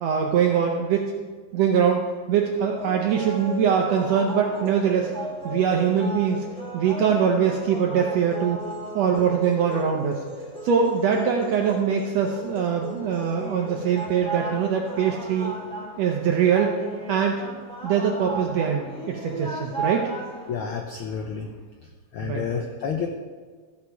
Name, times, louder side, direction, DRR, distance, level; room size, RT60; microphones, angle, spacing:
voice 1, 0.0-1.0 1.5-2.0 2.3-5.1 5.4-6.5 6.7-8.6 8.9-10.2 10.6-15.5 16.0-16.7 17.1-17.4 17.8-20.1 22.2-22.5, right 7 dB, 70° right, 1 dB, 1.8 m, -22 dB
sound 1, 2.7-20.5, right 1 dB, 5° left, 1.3 m, -35 dB
voice 2, 20.5-21.5 22.1-23.1, left 6 dB, 85° left, 3 dB, 1.2 m, -30 dB
14.5 x 7.2 x 4.7 m, 1.5 s
omnidirectional pair, 3.4 m